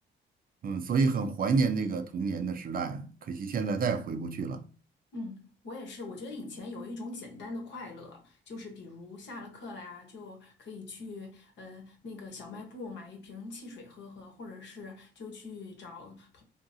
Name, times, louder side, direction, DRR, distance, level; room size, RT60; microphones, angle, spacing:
voice 1, 0.6-4.6, right 4 dB, 45° right, 0.5 m, -29 dB
voice 2, 5.1-16.4, left 3 dB, 65° left, 1.1 m, -43 dB
2.8 x 2.6 x 2.6 m
cardioid pair, 90°, 20 cm